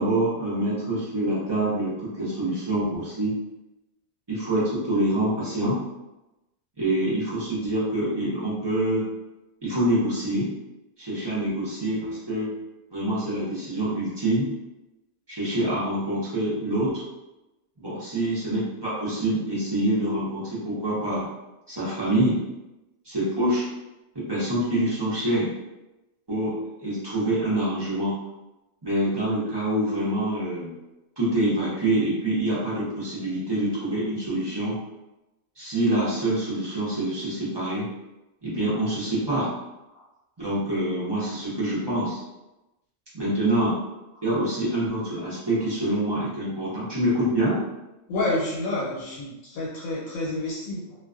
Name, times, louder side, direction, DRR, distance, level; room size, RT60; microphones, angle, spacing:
voice 1, 0.0-3.3 4.3-5.8 6.8-9.1 9.6-10.5 11.0-12.5 12.9-14.5 15.3-17.0 17.8-21.3 21.7-22.4 23.0-23.7 24.1-25.5 26.3-28.2 28.8-30.7 31.2-34.8 35.6-37.9 38.4-39.5 40.4-42.2 43.1-43.8 44.2-47.6, right 1 dB, 25° right, -9 dB, 0.5 m, -26 dB
voice 2, 48.1-51.0, left 2 dB, 75° left, -6 dB, 1.1 m, -29 dB
2.4 x 2.2 x 2.3 m, 0.98 s
omnidirectional pair, 1.4 m